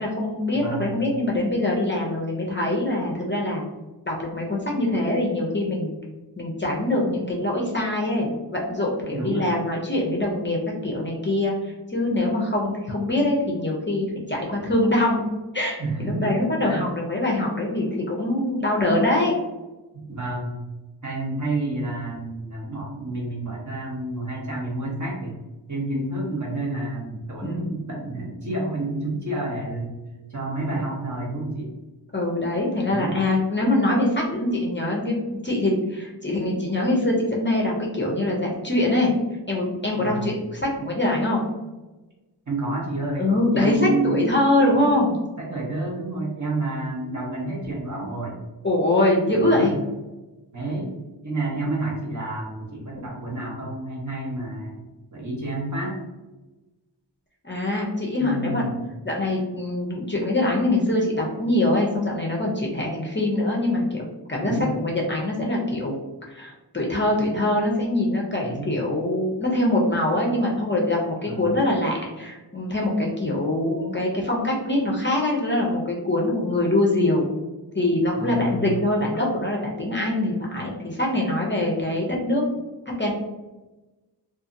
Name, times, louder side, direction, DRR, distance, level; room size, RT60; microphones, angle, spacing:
voice 1, 0.0-3.6 4.1-5.9 6.4-11.5 11.9-15.3 15.5-19.4 27.4-27.8 32.1-39.1 39.5-41.4 43.2-43.8 44.0-45.2 48.6-49.7 57.4-58.6 59.0-65.9 66.3-77.3 77.7-82.4 83.0-83.1, left 1 dB, 25° left, -3 dB, 0.5 m, -23 dB
voice 2, 0.5-1.0 9.1-9.4 15.8-16.3 16.6-16.8 19.9-20.6 21.0-25.4 25.7-30.0 30.3-31.7 32.8-33.2 39.9-40.3 42.5-44.2 45.4-48.4 49.3-49.8 50.5-50.9 51.2-54.8 55.1-56.0 58.2-58.9 64.4-64.7 68.4-68.7 71.2-71.5 78.2-78.7, right 2 dB, 40° right, -4 dB, 0.9 m, -29 dB
2.6 x 2.4 x 2.5 m, 1.1 s
wide cardioid pair, 95°, 43 cm